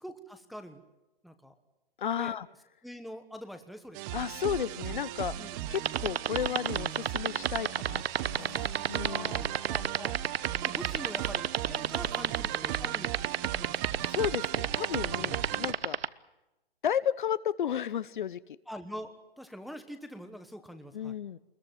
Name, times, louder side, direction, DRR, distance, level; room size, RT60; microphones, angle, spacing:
voice 1, 0.0-0.8 1.2-1.5 2.2-2.4 2.8-4.2 5.4-5.6 8.3-10.2 10.6-13.2 13.6-14.1 15.2-15.4 18.7-21.1, equal, ahead, 7 dB, 1.1 m, -45 dB
voice 2, 2.0-2.5 4.1-9.5 14.0-16.1 16.8-18.4 20.9-21.4, left 9 dB, 55° left, 18 dB, 0.9 m, -33 dB
sound 1, 3.9-15.7, right 12 dB, 20° right, 0.9 m, -37 dB
sound 2, 5.7-16.1, right 8 dB, 80° right, 1.1 m, -27 dB
23.5 x 21.5 x 7.6 m, 0.98 s
hypercardioid pair, 150°, 30 cm